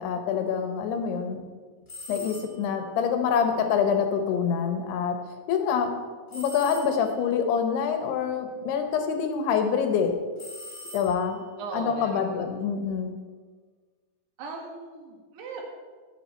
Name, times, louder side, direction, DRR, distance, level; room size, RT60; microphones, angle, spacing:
voice 1, 0.0-1.4 2.1-5.2 5.5-5.9 6.3-10.1 10.9-11.4 11.7-13.1, left 7 dB, 85° left, 6 dB, 3.0 m, -26 dB
sound 1, 1.9-2.8 6.3-7.3 10.4-11.5, left 1 dB, 45° left, 0.6 m, -43 dB
voice 2, 11.6-12.4 14.4-15.6, right 3 dB, 85° right, 0 dB, 3.6 m, -38 dB
10.5 x 8.0 x 4.3 m, 1.5 s
omnidirectional pair, 4.6 m